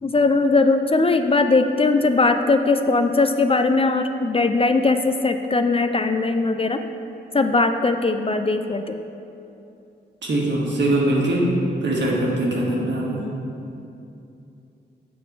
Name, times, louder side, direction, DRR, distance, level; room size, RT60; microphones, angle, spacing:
voice 1, 0.0-6.8 7.3-9.0, left 3 dB, 30° left, 7 dB, 0.4 m, -20 dB
voice 2, 10.2-11.5 11.8-13.3, right 1 dB, 65° right, -3 dB, 1.5 m, -22 dB
7.7 x 3.7 x 6.6 m, 2.7 s
cardioid pair, 55°, 20 cm